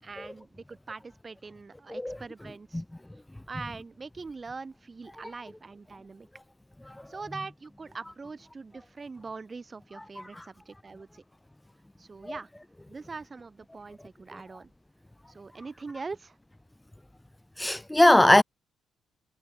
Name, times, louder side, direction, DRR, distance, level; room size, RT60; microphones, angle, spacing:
voice 1, 0.0-2.8 3.5-6.3 7.1-11.2 12.0-12.5 12.9-14.7 15.3-16.4, right 4 dB, 30° right, 7.0 m, -42 dB
voice 2, 1.9-2.2 2.7-2.8 6.9-7.0 8.0-8.1 10.0-10.5 12.2-12.3 17.6-18.4, left 1 dB, 10° left, 0.5 m, -22 dB
cardioid pair, 90°, 0 cm